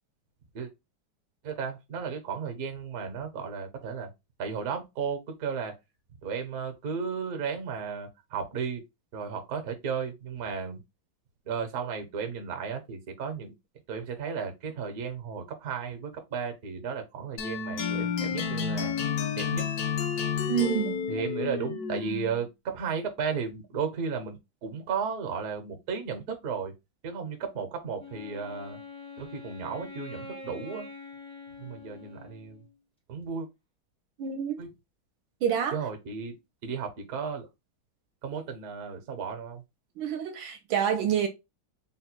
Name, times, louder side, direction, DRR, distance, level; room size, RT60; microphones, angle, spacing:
voice 1, 1.4-4.1 4.4-5.7 6.2-8.8 9.1-10.8 11.4-13.5 13.9-19.0 19.3-19.7 21.1-26.7 27.0-28.8 29.2-30.9 31.6-32.6 33.1-33.5 34.6-34.7 35.7-36.4 36.6-37.5 38.2-39.6, right 6 dB, 55° right, 1.2 m, -34 dB
sound 1, 17.4-22.5, left 6 dB, 70° left, 0.9 m, -30 dB
voice 2, 20.5-21.2 34.2-34.6 35.4-35.8 40.0-41.3, right 9 dB, 75° right, 1.4 m, -28 dB
Wind instrument woodwind instrument, 28.0-32.8, left 3 dB, 5° left, 0.4 m, -45 dB
4.0 x 2.2 x 4.3 m
omnidirectional pair, 2.3 m